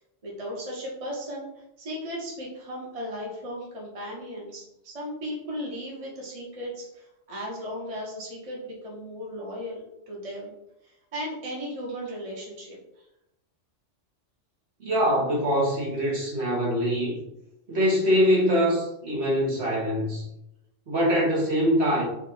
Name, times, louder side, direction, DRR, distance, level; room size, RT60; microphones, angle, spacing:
voice 1, 0.2-10.5 10.8-12.8, equal, 30° right, -4 dB, 1.2 m, -36 dB
voice 2, 14.8-17.2 17.7-20.2 20.9-22.0, equal, 60° right, -4 dB, 1.6 m, -23 dB
4.4 x 2.5 x 4.4 m, 0.85 s
omnidirectional pair, 1.3 m